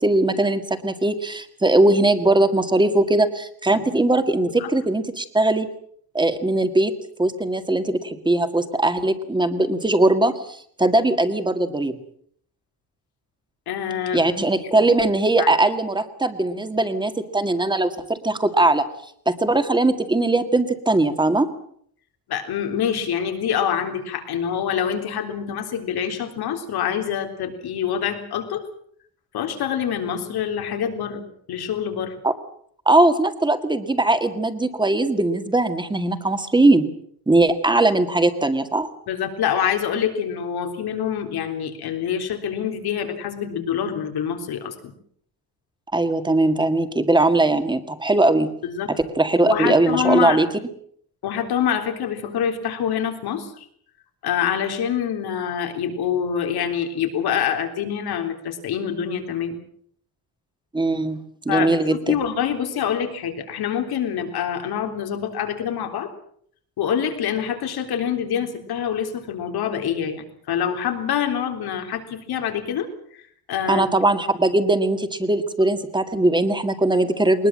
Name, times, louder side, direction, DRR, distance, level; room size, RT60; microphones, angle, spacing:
voice 1, 0.0-5.7 6.1-6.9 7.2-12.0 14.1-18.8 19.3-21.5 32.2-32.3 32.9-36.9 37.3-38.9 45.9-48.5 49.2-50.5 60.7-61.2 61.5-62.2 73.7-77.5, right 2 dB, 10° right, 9 dB, 1.9 m, -20 dB
voice 2, 13.7-14.3 15.4-15.5 22.3-28.7 29.3-31.2 31.5-32.2 39.1-44.9 48.6-48.9 49.5-50.4 51.2-53.7 54.2-59.6 61.5-61.8 62.1-66.1 66.8-73.2 73.5-73.8, left 8 dB, 85° left, 5 dB, 3.8 m, -26 dB
21.5 x 20.5 x 7.6 m, 0.64 s
cardioid pair, 150°, 37 cm